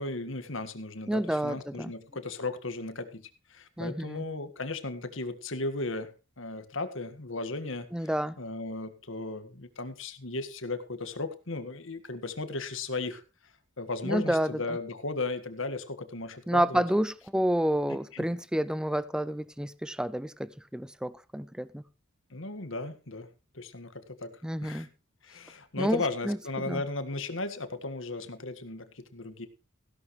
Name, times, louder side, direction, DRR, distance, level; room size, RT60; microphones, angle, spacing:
voice 1, 0.0-6.1 6.4-7.9 8.4-13.2 13.8-16.8 18.1-18.2 22.3-23.3 23.5-24.3 24.6-24.9 25.2-29.5, left 3 dB, 65° left, 1.7 m, -36 dB
voice 2, 1.1-1.9 3.8-4.2 7.9-8.4 14.0-14.8 16.5-21.8 24.4-24.9 25.8-26.4 26.6-26.8, equal, 5° right, 0.5 m, -29 dB
16.0 x 11.5 x 3.2 m
head